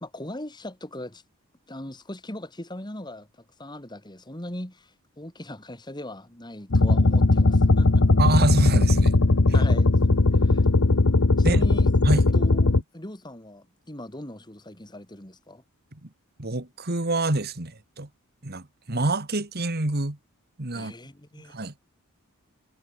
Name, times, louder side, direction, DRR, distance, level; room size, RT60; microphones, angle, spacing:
voice 1, 0.0-1.2 1.7-8.0 9.5-9.9 10.3-10.7 11.4-15.6 20.7-21.5, left 1 dB, 20° left, 2.5 m, -39 dB
sound 1, 6.7-12.8, left 2 dB, 70° left, 1.0 m, -19 dB
voice 2, 8.2-9.1 11.4-11.6 12.0-12.2 15.9-16.1 16.4-18.1 18.4-20.2 20.6-20.9 21.5-21.7, right 2 dB, 45° right, 1.9 m, -26 dB
head